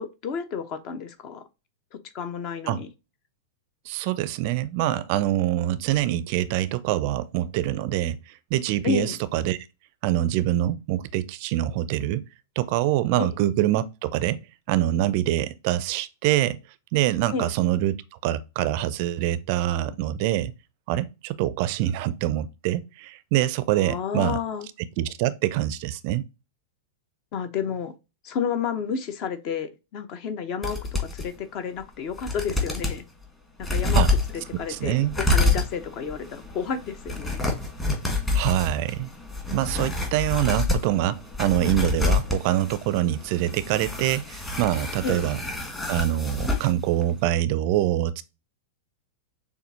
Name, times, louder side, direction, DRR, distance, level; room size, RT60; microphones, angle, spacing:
voice 1, 0.0-1.4 2.1-2.9 8.8-9.2 13.2-13.3 17.3-17.5 23.8-24.7 27.3-27.9 28.2-33.0 33.6-34.0 34.6-37.4 42.0-42.1 45.0-45.2, left 6 dB, 45° left, 0.7 m, -31 dB
voice 2, 3.9-9.6 10.0-12.2 12.6-14.4 14.7-16.6 16.9-18.0 18.2-20.5 20.9-24.4 25.0-26.2 33.9-34.1 34.7-35.1 38.3-39.1 39.5-45.4 45.9-48.2, right 13 dB, 50° right, 0.4 m, -25 dB
sound 1, 30.6-31.3 31.8-31.9 32.2-33.0 33.6-46.7 47.0-47.1, left 3 dB, 15° left, 1.5 m, -28 dB
6.6 x 2.5 x 2.7 m
figure-of-eight pair, 100°, 0 cm